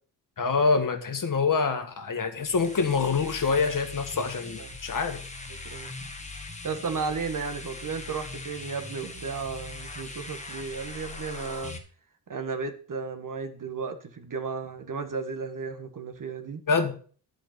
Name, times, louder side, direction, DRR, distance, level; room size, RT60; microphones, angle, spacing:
voice 1, 0.4-5.2 16.7-16.9, left 4 dB, 50° left, 7 dB, 1.7 m, -26 dB
sound 1, 2.4-11.8, left 3 dB, 15° left, 1.8 m, -41 dB
voice 2, 5.6-6.1 6.6-11.8 12.3-16.6, right 5 dB, 50° right, 8 dB, 1.6 m, -34 dB
10.5 x 5.2 x 6.7 m, 0.43 s
wide cardioid pair, 100°, 41 cm